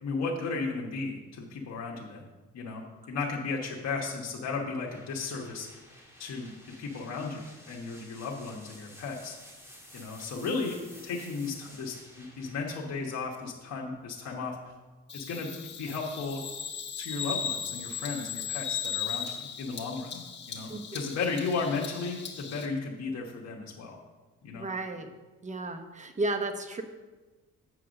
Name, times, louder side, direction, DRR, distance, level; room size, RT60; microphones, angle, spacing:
voice 1, 0.0-2.2 2.5-5.7 6.2-6.5 6.8-9.4 9.9-14.7 15.1-16.4 17.0-20.2 20.5-24.0 24.4-24.7, left 4 dB, 60° left, -3 dB, 1.4 m, -35 dB
sound 1, 4.9-14.6, equal, 10° right, 2.1 m, -53 dB
Bird vocalization bird call bird song, 15.1-22.6, left 7 dB, 35° left, 1.4 m, -37 dB
voice 2, 20.7-21.0 24.5-25.1 25.4-26.8, right 2 dB, 25° right, 7 dB, 1.0 m, -33 dB
7.9 x 4.8 x 6.4 m, 1.2 s
cardioid pair, 90°, 30 cm